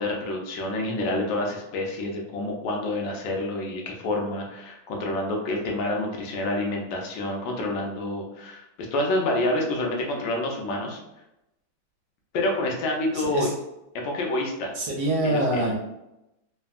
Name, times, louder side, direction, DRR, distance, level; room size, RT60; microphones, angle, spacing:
voice 1, 0.0-8.6 8.9-11.0 12.3-13.5 14.0-14.7 15.2-15.7, left 1 dB, 75° left, 1 dB, 1.3 m, -28 dB
voice 2, 13.1-13.5 14.8-15.8, right 1 dB, 70° right, -2 dB, 1.3 m, -25 dB
3.5 x 2.2 x 2.4 m, 0.89 s
omnidirectional pair, 2.2 m